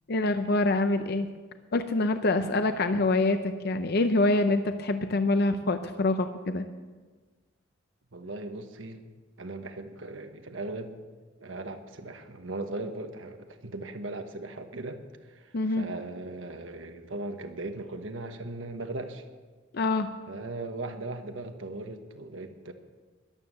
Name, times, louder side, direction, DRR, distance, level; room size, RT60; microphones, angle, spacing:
voice 1, 0.1-1.3 1.7-6.6 15.5-15.9 19.7-20.1, left 2 dB, 55° left, 9 dB, 0.6 m, -25 dB
voice 2, 8.1-9.0 9.4-10.9 11.4-19.2 20.3-22.7, right 2 dB, 75° right, 7 dB, 1.3 m, -38 dB
13.5 x 11.5 x 6.7 m, 1.4 s
head